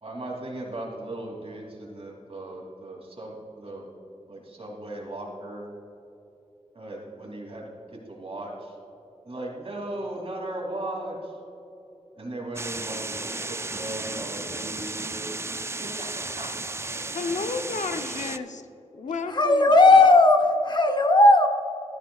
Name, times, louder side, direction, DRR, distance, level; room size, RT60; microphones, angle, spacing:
voice 1, 0.0-3.9 4.3-5.7 6.7-8.7 9.2-11.3 12.2-15.3 15.8-17.2 18.2-18.3, right 1 dB, 50° right, 2.8 m, -37 dB
sound 1, 12.6-18.4, right 3 dB, 20° right, 0.3 m, -34 dB
voice 2, 17.1-18.6 18.9-19.7, left 4 dB, 90° left, 0.7 m, -31 dB
voice 3, 19.3-21.5, left 2 dB, 40° left, 0.9 m, -16 dB
14.0 x 14.0 x 2.4 m
wide cardioid pair, 80°, 12 cm